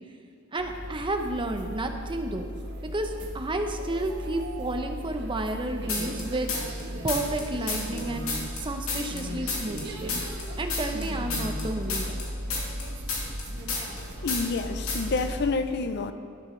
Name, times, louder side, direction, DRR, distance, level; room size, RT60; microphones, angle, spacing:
voice 1, 0.5-2.5 2.9-6.5 7.0-8.3 8.6-10.2 10.6-12.2, right 1 dB, 25° right, 5 dB, 0.7 m, -31 dB
sound 1, 0.6-15.5, equal, 55° right, 1.2 m, -36 dB
sound 2, 5.9-6.8 7.1-9.8 10.1-14.0 14.3-14.6 14.9-15.2, left 4 dB, 75° left, 2.6 m, -31 dB
voice 2, 14.2-16.1, left 3 dB, 50° left, 9 dB, 0.5 m, -28 dB
12.0 x 11.5 x 3.2 m, 2.3 s
head